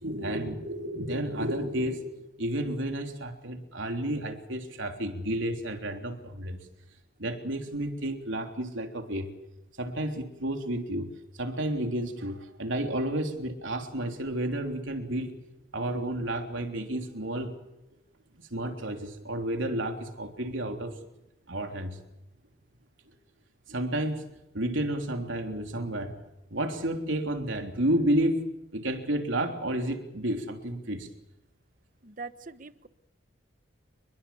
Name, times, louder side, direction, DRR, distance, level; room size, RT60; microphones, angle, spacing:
voice 1, 0.0-6.6 7.2-9.3 9.8-11.1 11.4-15.3 15.7-17.6 18.5-21.0 21.5-22.0 23.7-24.3 24.5-26.2 26.5-31.1, right 1 dB, 75° right, 4 dB, 3.5 m, -31 dB
voice 2, 32.0-32.9, right 4 dB, 40° right, 12 dB, 1.1 m, -42 dB
29.0 x 22.0 x 7.2 m, 0.91 s
head